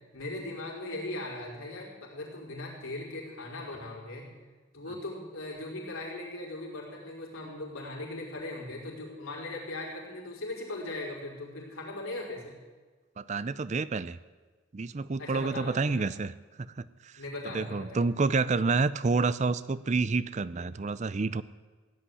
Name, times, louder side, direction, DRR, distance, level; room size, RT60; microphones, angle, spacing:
voice 1, 0.1-4.3 4.7-12.5 15.2-16.0 17.2-18.0, left 2 dB, 90° left, -3 dB, 5.1 m, -39 dB
voice 2, 13.2-14.2 14.7-16.3 16.8-16.9 17.5-21.4, right 4 dB, 35° right, 17 dB, 0.4 m, -28 dB
16.0 x 8.8 x 9.8 m, 1.4 s
head